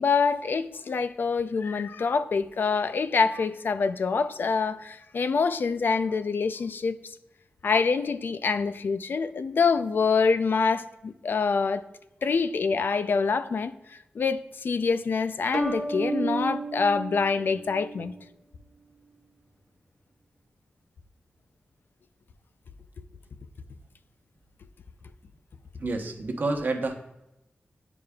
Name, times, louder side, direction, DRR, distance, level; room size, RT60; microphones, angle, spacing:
voice 1, 0.0-7.0 7.6-11.8 12.2-18.2, left 5 dB, 65° left, 0.4 m, -26 dB
sound 1, 15.5-18.2, right 3 dB, 5° right, 0.5 m, -32 dB
voice 2, 25.8-26.9, right 3 dB, 55° right, 1.0 m, -29 dB
9.5 x 4.9 x 2.3 m
wide cardioid pair, 130°, 4 cm